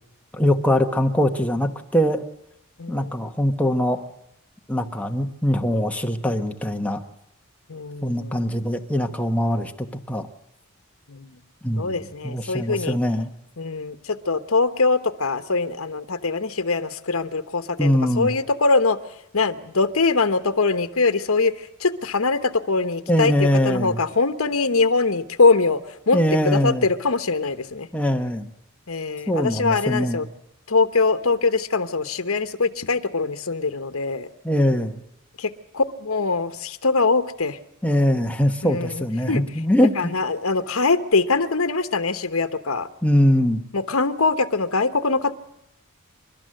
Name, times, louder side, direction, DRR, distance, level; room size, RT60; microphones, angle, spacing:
voice 1, 0.3-2.2 2.9-4.0 4.7-7.0 8.0-10.3 11.6-13.3 17.8-18.3 23.1-24.0 26.1-26.9 27.9-28.5 29.3-30.2 34.4-35.0 37.8-39.9 43.0-43.6, equal, 5° left, 4 dB, 1.1 m, -22 dB
voice 2, 2.8-3.1 7.7-8.5 11.1-11.4 11.8-13.0 13.6-19.0 19.3-26.2 26.4-27.9 28.9-30.3 30.7-34.3 35.4-37.6 38.6-39.4 40.0-42.9 43.7-45.3, left 3 dB, 70° left, 10 dB, 1.1 m, -23 dB
28.0 x 12.5 x 7.7 m, 0.84 s
head